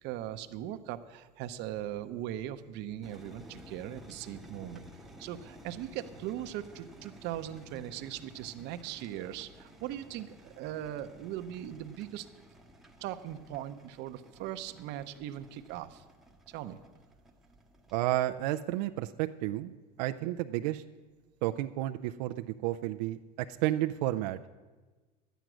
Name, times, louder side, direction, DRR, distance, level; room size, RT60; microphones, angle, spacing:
voice 1, 0.0-4.8 5.2-12.3 13.0-16.0 16.5-16.8 20.2-20.3, right 12 dB, 55° right, 10 dB, 0.7 m, -39 dB
sound 1, 3.0-17.9, equal, ahead, 0.9 m, -54 dB
voice 2, 17.9-19.7 20.0-20.8 21.4-24.5, right 15 dB, 90° right, 7 dB, 0.5 m, -31 dB
11.5 x 9.2 x 6.1 m, 1.3 s
cardioid pair, 140°, 21 cm